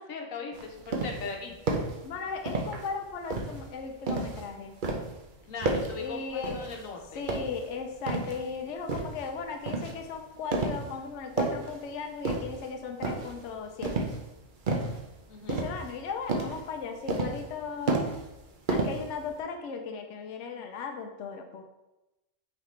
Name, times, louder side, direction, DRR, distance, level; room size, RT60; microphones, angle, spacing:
voice 1, 0.0-1.6 5.5-7.2 15.3-15.7, left 4 dB, 85° left, 2 dB, 1.4 m, -39 dB
sound 1, 0.5-1.3 1.7-2.0 2.5-2.9 3.3-4.5 4.8-5.2 5.6-6.0 6.4-6.8 7.2-8.4 8.9-9.2 9.7-10.0 10.5-10.9 11.2-11.8 12.2-12.7 13.0-13.4 13.8-14.3 14.7-15.0 15.5-16.0 16.3-16.6 17.1-17.6 17.9-18.4 18.7-19.3, right 3 dB, 45° right, 0.8 m, -31 dB
voice 2, 2.0-4.8 6.0-6.6 7.1-14.1 15.5-18.1 18.7-21.6, left 5 dB, 70° left, 4 dB, 0.9 m, -37 dB
8.9 x 4.0 x 3.2 m, 1.0 s
omnidirectional pair, 1.3 m